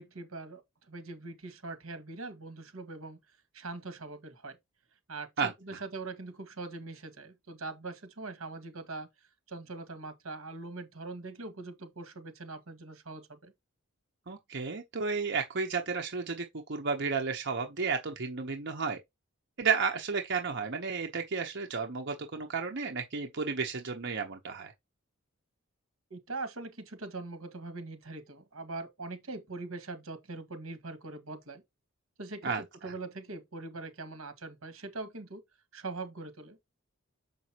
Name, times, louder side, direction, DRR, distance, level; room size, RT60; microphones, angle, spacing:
voice 1, 0.0-3.2 3.5-4.6 5.1-9.1 9.5-13.5 26.1-31.6 32.2-35.4 35.7-36.6, right 3 dB, 90° right, 1.9 m, -42 dB
voice 2, 5.4-5.8 14.3-19.0 19.6-24.7 32.4-32.9, right 5 dB, 55° right, 1.0 m, -32 dB
6.9 x 5.4 x 2.9 m
head